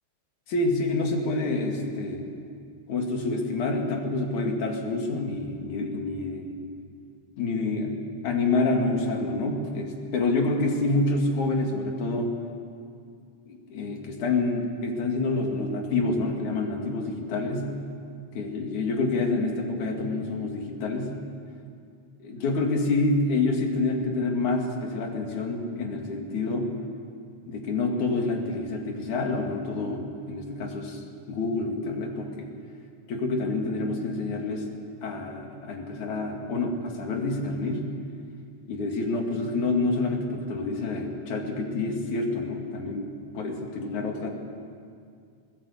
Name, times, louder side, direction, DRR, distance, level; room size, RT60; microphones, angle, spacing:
voice 1, 0.5-2.3 2.9-6.6 7.4-12.3 13.5-17.7 18.4-21.1 22.2-26.7 27.5-31.0 31.3-32.5 33.1-34.7 35.0-37.8 38.7-43.1 43.3-44.3, left 3 dB, 85° left, 2 dB, 3.8 m, -27 dB
21.5 x 19.5 x 8.6 m, 2.3 s
omnidirectional pair, 3.3 m